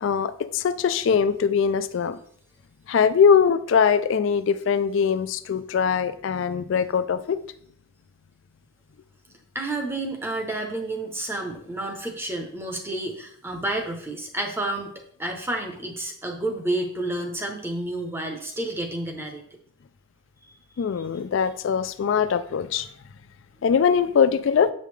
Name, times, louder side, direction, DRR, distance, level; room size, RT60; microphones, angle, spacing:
voice 1, 0.0-2.2 2.9-7.4 20.8-22.9 23.6-24.7, left 6 dB, 70° left, 13 dB, 0.3 m, -22 dB
voice 2, 9.5-19.4, right 2 dB, 10° right, 3 dB, 0.7 m, -30 dB
7.5 x 5.2 x 3.2 m, 0.64 s
head